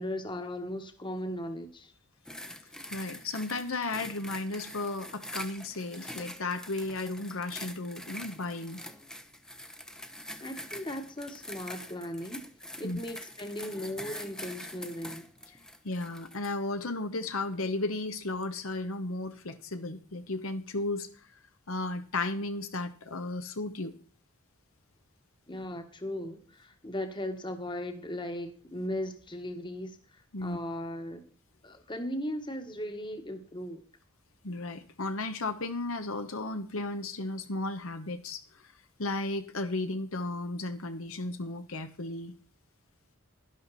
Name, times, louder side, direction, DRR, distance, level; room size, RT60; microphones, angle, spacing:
voice 1, 0.0-1.9 10.4-12.4 12.8-15.3 25.5-31.2 31.6-33.8, left 1 dB, 20° left, 6 dB, 1.5 m, -37 dB
sound 1, 2.3-16.6 17.2-17.4, left 1 dB, 5° left, 0.8 m, -44 dB
voice 2, 2.9-8.8 12.8-13.0 15.8-21.4 21.7-24.0 30.3-30.6 34.4-38.7 39.0-42.3, left 2 dB, 70° left, 8 dB, 1.1 m, -34 dB
11.5 x 11.5 x 4.2 m, 0.40 s
head